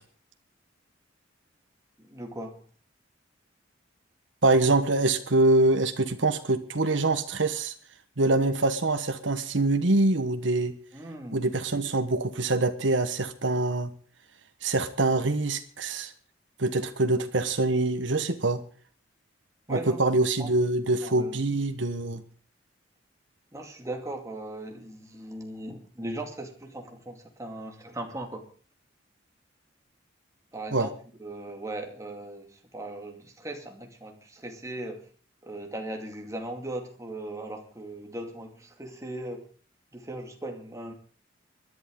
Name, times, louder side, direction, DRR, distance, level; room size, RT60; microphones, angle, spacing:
voice 1, 2.0-2.6 10.9-11.5 19.7-20.0 20.4-20.5 21.0-21.4 23.5-28.5 30.5-30.9 31.2-35.1 35.4-39.4 39.9-40.9, right 1 dB, 15° right, 3 dB, 2.4 m, -38 dB
voice 2, 4.4-7.7 8.2-10.8 11.3-13.9 14.6-16.1 16.6-18.6 19.7-22.2 30.7-30.9, right 2 dB, 70° right, 7 dB, 1.3 m, -24 dB
24.5 x 11.0 x 3.8 m, 0.41 s
head